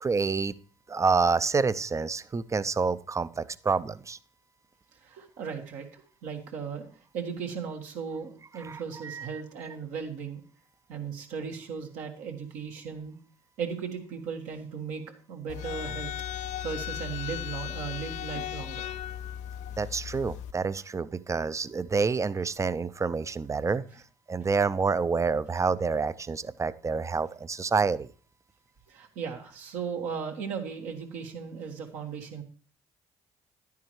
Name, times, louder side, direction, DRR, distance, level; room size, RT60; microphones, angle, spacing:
voice 1, 0.0-0.5 0.9-4.2 8.6-9.4 19.8-23.8 24.3-28.1, right 4 dB, 25° right, 17 dB, 0.5 m, -28 dB
voice 2, 5.0-6.9 7.1-10.4 10.9-13.2 13.6-15.0 15.3-16.1 16.6-18.9 28.9-32.4, right 6 dB, 75° right, 2 dB, 1.7 m, -37 dB
sound 1, 15.5-20.5, left 10 dB, 70° left, 0.4 m, -36 dB
10.5 x 9.4 x 3.2 m, 0.42 s
hypercardioid pair, 55°, 13 cm